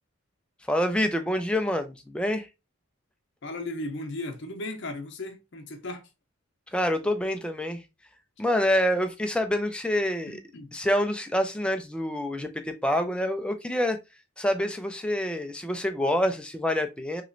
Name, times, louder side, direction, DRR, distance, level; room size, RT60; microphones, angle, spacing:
voice 1, 0.7-2.5 6.7-7.8 8.4-10.3 10.7-14.0 14.4-17.2, equal, 5° left, 0.3 m, -26 dB
voice 2, 3.4-6.1 10.3-10.7, left 2 dB, 60° left, 0.6 m, -36 dB
3.0 x 3.0 x 2.5 m
head